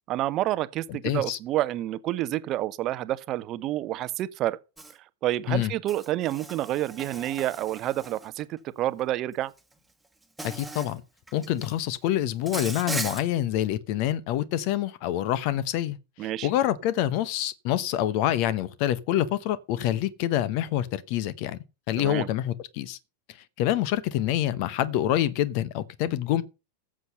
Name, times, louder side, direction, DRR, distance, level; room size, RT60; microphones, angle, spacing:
voice 1, 0.1-4.6 5.2-9.5 16.2-16.5 22.0-22.3, right 14 dB, 35° right, 0.7 m, -29 dB
voice 2, 0.9-1.4 5.5-5.7 10.4-11.0 11.3-16.0 16.4-21.6 21.9-23.0 23.6-26.4, left 12 dB, 45° left, 0.9 m, -26 dB
Insect, 4.8-4.9 5.9-8.4 9.6-9.7 10.4-10.9 11.3-11.8 12.5-13.2, right 2 dB, ahead, 1.7 m, -37 dB
13.5 x 7.6 x 5.5 m
figure-of-eight pair, 90°, 0 cm